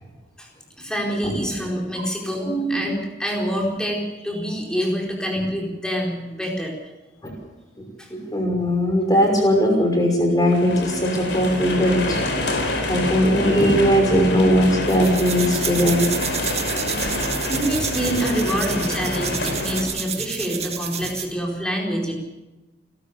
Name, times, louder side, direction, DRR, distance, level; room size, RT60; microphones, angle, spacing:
voice 1, 0.8-6.7 8.0-8.1 15.5-15.6 16.5-16.6 17.1-22.2, equal, 5° left, -1 dB, 4.6 m, -26 dB
voice 2, 2.5-2.8 7.2-7.3 8.1-12.5 12.9-16.1, equal, 20° left, 2 dB, 5.8 m, -19 dB
sound 1, 10.5-19.8, left 2 dB, 70° left, 4.6 m, -27 dB
sound 2, 14.9-21.4, right 8 dB, 35° right, 1.9 m, -30 dB
28.5 x 13.0 x 7.1 m, 1.1 s
head